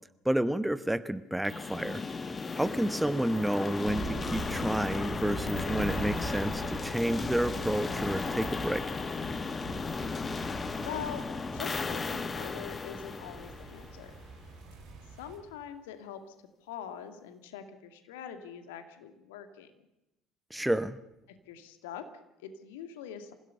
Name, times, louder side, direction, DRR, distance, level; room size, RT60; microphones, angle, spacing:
voice 1, 0.2-8.8 20.5-21.0, right 1 dB, 5° right, 14 dB, 1.0 m, -30 dB
sound 1, 1.4-14.3, left 4 dB, 25° left, 1.2 m, -35 dB
sound 2, 3.8-15.4, right 4 dB, 60° right, 7.3 m, -42 dB
voice 2, 10.8-11.2 11.5-14.1 15.2-16.2 16.6-19.7 21.5-23.3, left 8 dB, 70° left, 9 dB, 2.0 m, -43 dB
27.0 x 16.0 x 6.8 m, 0.94 s
figure-of-eight pair, 60°, 0 cm